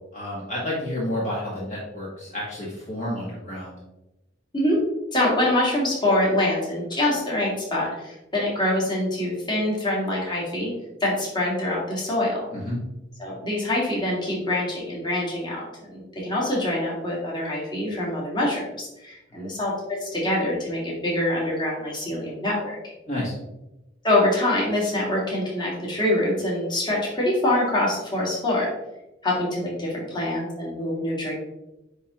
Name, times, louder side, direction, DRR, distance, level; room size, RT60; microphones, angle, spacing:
voice 1, 0.1-3.8 12.5-12.8 19.3-19.4 23.1-23.4, left 1 dB, 40° left, -6 dB, 1.6 m, -30 dB
voice 2, 5.1-10.7 11.0-12.4 13.2-19.7 20.0-22.8 24.0-28.7 29.2-31.3, left 1 dB, 25° left, -5 dB, 1.9 m, -25 dB
9.5 x 3.6 x 3.0 m, 0.95 s
head